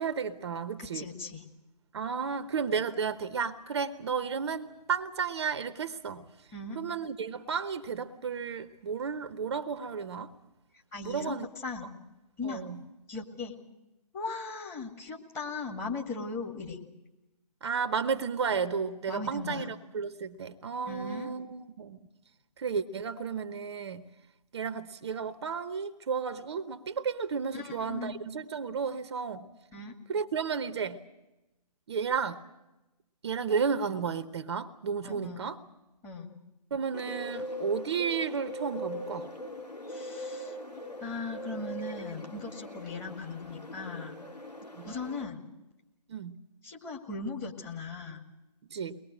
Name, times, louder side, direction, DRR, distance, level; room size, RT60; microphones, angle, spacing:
voice 1, 0.0-1.1 1.9-6.2 6.7-10.3 11.0-11.5 12.4-12.8 17.6-22.0 22.6-24.0 24.5-29.5 30.1-31.0 31.9-32.4 33.2-35.6 36.7-39.3 44.7-44.9 46.1-46.4 48.7-49.0, right 6 dB, 40° right, 1.0 m, -33 dB
voice 2, 0.8-1.4 6.5-6.8 10.9-11.4 11.6-11.9 12.4-12.7 13.1-13.5 14.1-16.8 19.1-19.7 20.8-21.3 27.5-28.1 29.7-29.9 35.0-35.5 36.0-36.3 39.9-40.6 41.0-44.2 44.8-45.5 46.6-48.2, left 3 dB, 15° left, 2.2 m, -38 dB
Bird, 36.9-45.2, left 1 dB, 85° left, 2.7 m, -41 dB
23.0 x 20.0 x 7.6 m
figure-of-eight pair, 140°, 20 cm